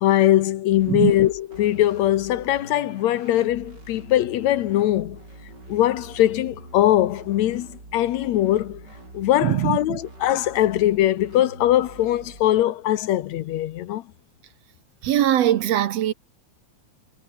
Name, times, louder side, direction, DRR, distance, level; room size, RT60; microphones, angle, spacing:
voice 1, 0.0-5.2 5.7-8.8 9.1-14.0, left 13 dB, 70° left, 2.0 m, -21 dB
sound 1, 0.7-12.6, right 2 dB, 30° right, 8.7 m, -44 dB
voice 2, 9.4-10.0 15.0-16.1, right 12 dB, 65° right, 1.9 m, -21 dB
omnidirectional pair, 3.5 m